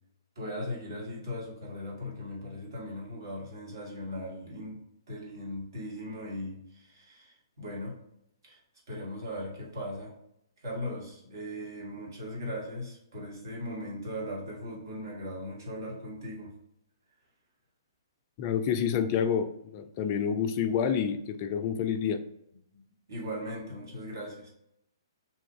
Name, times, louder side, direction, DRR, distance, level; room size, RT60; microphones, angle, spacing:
voice 1, 0.4-8.0 8.4-8.6 8.9-10.2 10.6-16.6 22.7-22.8 23.1-24.5, left 1 dB, 60° right, -3 dB, 1.3 m, -38 dB
voice 2, 18.4-22.2, left 7 dB, 35° left, 8 dB, 0.3 m, -28 dB
2.9 x 2.4 x 3.7 m, 0.77 s
figure-of-eight pair, 125°, 2 cm